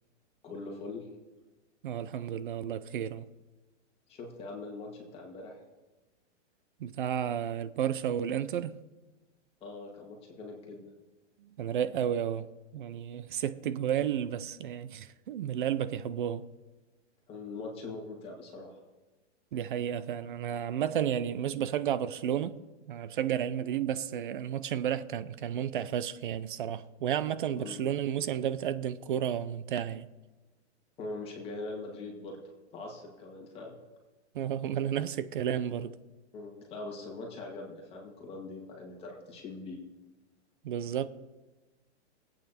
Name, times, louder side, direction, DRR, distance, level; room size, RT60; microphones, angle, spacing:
voice 1, 0.4-1.1 4.1-5.6 9.6-10.8 17.3-18.7 27.5-27.8 31.0-32.4 32.7-33.7 36.3-39.8, left 3 dB, 15° left, 1.9 m, -42 dB
voice 2, 1.8-3.2 6.8-8.8 11.6-12.5 12.7-16.5 19.5-22.6 22.9-30.1 34.3-36.0 40.6-41.1, right 9 dB, 45° right, 0.6 m, -32 dB
22.0 x 8.7 x 4.3 m
hypercardioid pair, 170°, 35 cm